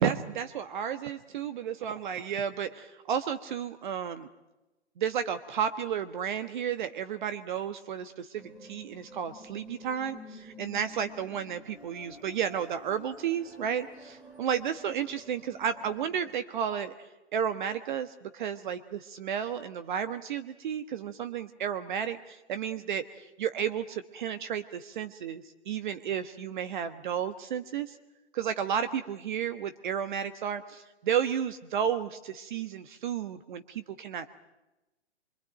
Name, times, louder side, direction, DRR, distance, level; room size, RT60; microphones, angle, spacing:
voice 1, 0.0-4.3 5.0-16.9 17.3-28.0 28.3-34.3, right 8 dB, 45° right, 11 dB, 1.3 m, -32 dB
sound 1, 8.3-16.3, left 1 dB, 5° right, 2.1 m, -50 dB
25.5 x 24.5 x 9.1 m, 1.0 s
hypercardioid pair, 135°, 35 cm